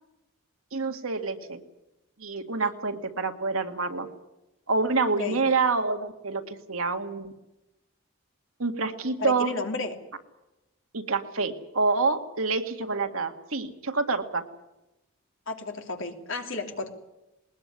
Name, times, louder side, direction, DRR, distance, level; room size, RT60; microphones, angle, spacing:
voice 1, 0.7-1.6 2.2-4.1 4.7-7.3 8.6-9.5 10.9-14.4, right 4 dB, 80° right, 6 dB, 2.0 m, -27 dB
voice 2, 9.2-10.0 15.5-16.9, left 3 dB, 65° left, 4 dB, 2.8 m, -32 dB
20.0 x 20.0 x 9.9 m, 0.96 s
head